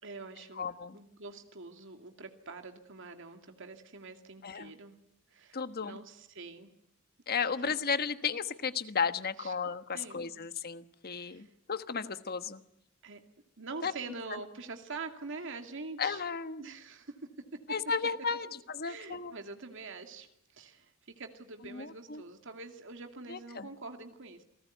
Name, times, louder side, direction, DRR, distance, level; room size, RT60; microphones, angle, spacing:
voice 1, 0.0-0.7 0.9-5.0 5.3-6.7 7.6-7.8 9.4-9.5 9.9-10.3 11.2-11.5 13.0-13.2 13.6-16.2 16.6-17.6 18.8-24.4, right 3 dB, 65° right, 6 dB, 2.4 m, -45 dB
voice 2, 0.6-1.0 4.4-4.7 5.5-6.0 7.3-12.6 13.8-13.9 16.0-16.6 17.7-19.4 21.7-22.2 23.3-23.7, left 5 dB, 45° left, 11 dB, 1.3 m, -34 dB
28.5 x 19.0 x 9.3 m, 0.81 s
head